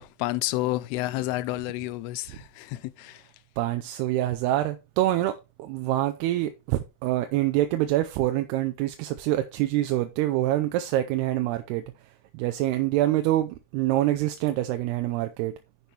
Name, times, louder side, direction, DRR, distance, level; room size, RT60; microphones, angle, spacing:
voice 1, 0.0-3.2, left 17 dB, 85° left, 2.6 m, -30 dB
voice 2, 3.6-15.5, right 14 dB, 85° right, 2.7 m, -26 dB
10.5 x 7.1 x 3.3 m
omnidirectional pair, 4.5 m